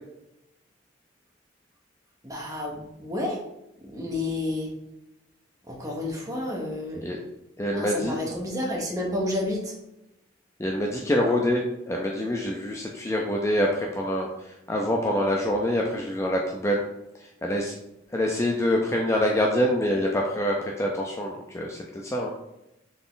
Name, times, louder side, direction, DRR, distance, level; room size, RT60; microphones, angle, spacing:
voice 1, 2.2-3.4 3.8-4.7 5.7-7.1 7.7-9.7, left 1 dB, 15° right, -1 dB, 0.9 m, -30 dB
voice 2, 7.6-8.2 10.6-16.8 17.2-17.8 18.1-22.3, left 1 dB, 15° left, 0 dB, 0.4 m, -26 dB
4.0 x 3.5 x 3.8 m, 0.87 s
head